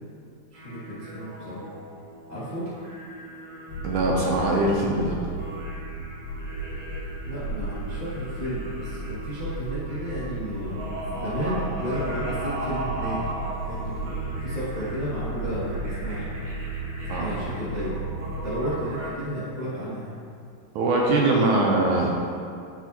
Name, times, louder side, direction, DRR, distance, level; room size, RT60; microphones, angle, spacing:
voice 1, 0.5-1.6 2.3-2.7 7.2-13.2 13.5-16.3 17.1-18.0 18.4-20.2, equal, 80° left, -11 dB, 0.3 m, -33 dB
sound 1, 0.5-19.1, right 1 dB, 60° right, 2.6 m, -38 dB
sound 2, 3.7-18.9, right 2 dB, 65° left, 2.0 m, -35 dB
voice 2, 3.8-5.2 17.1-17.3 20.8-22.1, right 2 dB, 75° right, -1 dB, 1.9 m, -22 dB
sound 3, 6.2-16.4, right 2 dB, 45° right, 1.4 m, -39 dB
11.5 x 4.6 x 2.9 m, 2.4 s
omnidirectional pair, 4.0 m